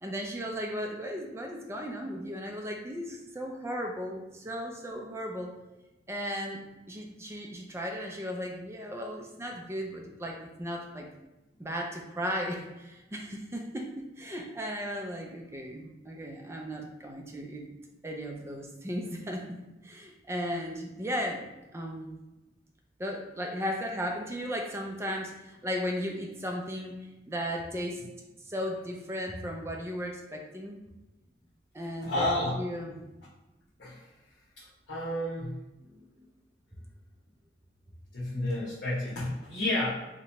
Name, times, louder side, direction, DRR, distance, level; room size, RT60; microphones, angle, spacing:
voice 1, 0.0-5.5 6.1-11.1 11.6-17.7 18.0-19.6 19.8-21.5 21.7-22.2 23.0-27.0 27.3-28.0 28.4-30.8 31.7-33.0 35.9-36.3, equal, 15° right, 1 dB, 0.4 m, -36 dB
voice 2, 32.0-32.6 33.8-34.1 34.6-35.5 38.1-39.9, left 1 dB, 90° left, -10 dB, 0.9 m, -31 dB
2.8 x 2.2 x 4.0 m, 1.0 s
head